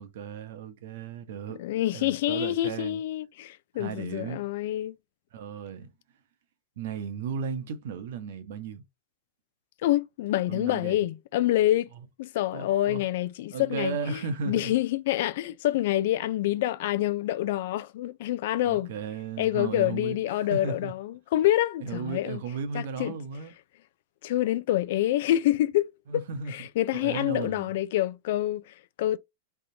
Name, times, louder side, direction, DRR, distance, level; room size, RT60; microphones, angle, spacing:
voice 1, 0.0-1.6 1.9-3.0 3.7-4.4 5.3-5.9 6.8-8.8 10.5-11.0 12.5-13.0 13.5-14.8 18.6-20.9 21.8-23.5 26.1-27.7, right 6 dB, 60° right, 1.1 m, -35 dB
voice 2, 1.6-4.9 9.8-11.9 12.2-14.2 14.5-18.9 19.4-22.4 22.7-23.2 24.2-26.2 26.5-29.2, left 14 dB, 55° left, 0.5 m, -27 dB
3.9 x 3.6 x 2.8 m
supercardioid pair, 155°, 0 cm